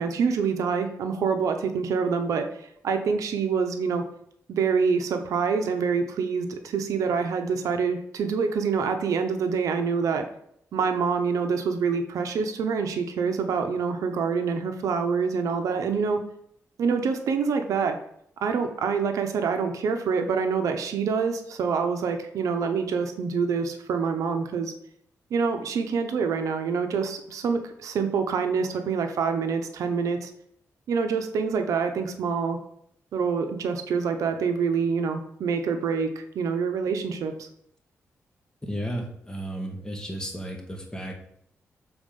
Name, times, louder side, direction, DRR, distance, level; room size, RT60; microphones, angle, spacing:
voice 1, 0.0-2.5 2.8-4.0 4.5-10.3 10.7-16.2 16.8-18.0 18.4-24.7 25.3-30.3 30.9-32.6 33.1-37.5, right 5 dB, 85° right, 6 dB, 0.8 m, -26 dB
voice 2, 38.6-41.1, equal, 15° left, 1 dB, 1.7 m, -33 dB
7.2 x 4.2 x 5.3 m, 0.71 s
cardioid pair, 75°, 5 cm